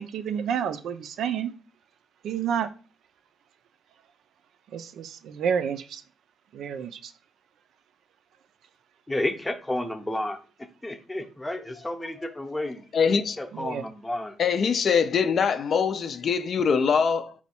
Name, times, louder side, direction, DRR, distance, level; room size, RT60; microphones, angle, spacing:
voice 1, 0.0-1.5 2.2-2.7 4.7-6.0 6.5-7.1 13.5-13.9, right 7 dB, 70° right, 0.4 m, -29 dB
voice 2, 9.1-10.4 10.8-12.8 13.4-14.4, left 1 dB, 15° left, 0.6 m, -31 dB
voice 3, 12.9-13.4 14.4-17.3, left 6 dB, 55° left, 0.3 m, -23 dB
4.2 x 2.2 x 4.2 m
cardioid pair, 90°, 0 cm